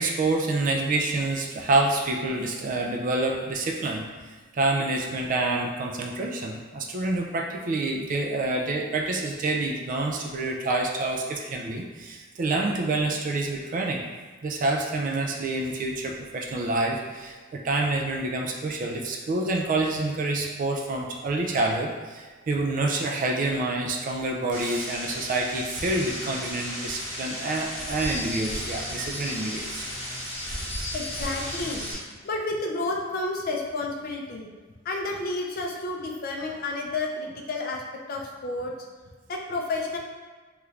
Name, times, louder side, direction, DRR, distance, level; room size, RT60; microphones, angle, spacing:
voice 1, 0.0-4.0 4.5-14.0 14.4-29.8, right 2 dB, 45° right, 1 dB, 0.3 m, -27 dB
sound 1, 24.5-31.9, equal, 25° left, 1.2 m, -34 dB
voice 2, 30.9-31.9 32.2-34.5 34.8-37.8 38.1-38.7 39.3-40.0, left 2 dB, 50° left, 0 dB, 0.4 m, -30 dB
3.2 x 3.0 x 2.4 m, 1.4 s
head